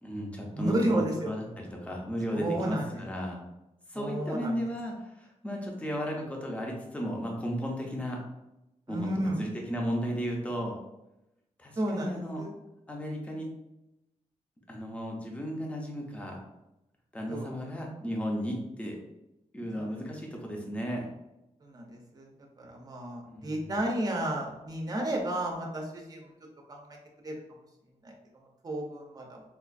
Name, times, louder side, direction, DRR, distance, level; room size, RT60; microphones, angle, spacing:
voice 1, 0.0-3.4 3.9-8.2 8.9-10.8 11.6-12.4 12.9-13.5 14.7-16.4 17.1-19.0 19.5-21.1 23.3-23.7, equal, 10° left, 0 dB, 0.6 m, -34 dB
voice 2, 0.6-1.3 2.3-3.0 3.9-4.6 8.9-9.5 11.8-12.6 17.3-17.5 19.7-19.9 21.6-22.3 22.6-26.3 26.7-27.0 27.2-27.3 28.0-29.4, right 1 dB, 30° right, 0 dB, 0.6 m, -32 dB
4.4 x 2.4 x 2.4 m, 0.92 s
wide cardioid pair, 175°, 13 cm